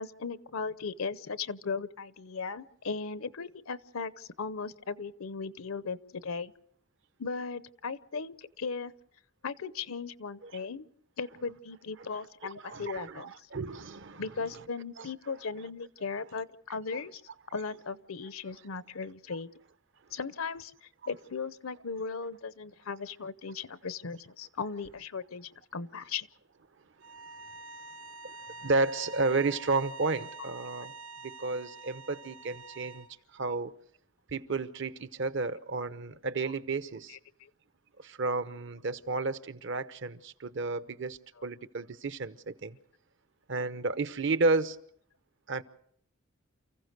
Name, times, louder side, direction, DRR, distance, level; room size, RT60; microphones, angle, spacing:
voice 1, 0.0-6.5 7.2-8.9 9.4-10.9 11.2-13.3 14.2-17.2 17.5-19.5 20.1-26.3 37.1-37.5, left 5 dB, 80° left, 0.8 m, -37 dB
voice 2, 12.6-14.3 15.0-15.1 16.9-17.0 28.2-28.3 28.6-30.9 31.2-33.1 33.3-33.7 34.3-37.2 38.0-42.8 43.5-44.8 45.5-45.6, right 3 dB, 60° right, 0.9 m, -32 dB
sound 1, 27.0-33.1, right 3 dB, 75° right, 1.4 m, -46 dB
29.0 x 15.5 x 6.7 m
head